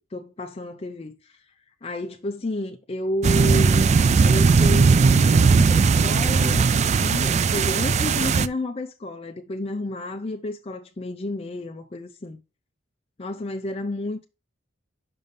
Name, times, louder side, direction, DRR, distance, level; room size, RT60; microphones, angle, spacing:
voice 1, 0.1-1.4 1.8-3.9 4.2-12.4 13.2-14.2, left 1 dB, 30° left, 0.5 m, -31 dB
sound 1, 3.2-8.5, right 5 dB, 35° right, 0.3 m, -18 dB
5.5 x 5.3 x 5.2 m
head